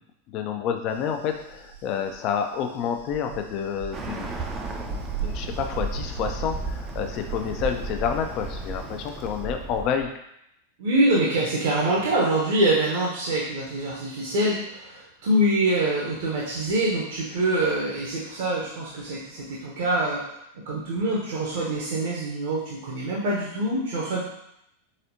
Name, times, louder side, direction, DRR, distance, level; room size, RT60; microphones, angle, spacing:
voice 1, 0.3-4.3 5.2-10.1, left 7 dB, 40° left, 5 dB, 0.5 m, -29 dB
sound 1, 0.9-9.4, right 7 dB, 80° right, 0.9 m, -39 dB
Bird, 3.9-10.1, right 2 dB, 20° right, 0.5 m, -34 dB
voice 2, 10.8-20.3 20.5-24.2, right 1 dB, 55° right, -5 dB, 0.9 m, -25 dB
4.2 x 4.0 x 2.7 m, 0.79 s
figure-of-eight pair, 90°, 0 cm